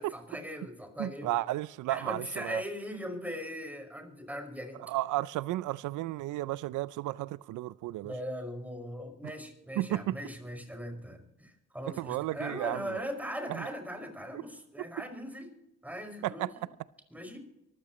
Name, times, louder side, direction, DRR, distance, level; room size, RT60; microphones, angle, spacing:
voice 1, 0.0-1.3 1.9-4.8 8.0-15.5 15.8-16.6 17.1-17.4, equal, 5° right, 4 dB, 5.4 m, -40 dB
voice 2, 1.0-2.6 4.8-8.1 9.8-10.2 12.0-13.0 13.5-13.7 14.3-14.4 14.8-14.9 16.2-16.7, right 16 dB, 80° right, 18 dB, 0.5 m, -33 dB
24.5 x 15.0 x 3.1 m, 0.88 s
cardioid pair, 90°, 30 cm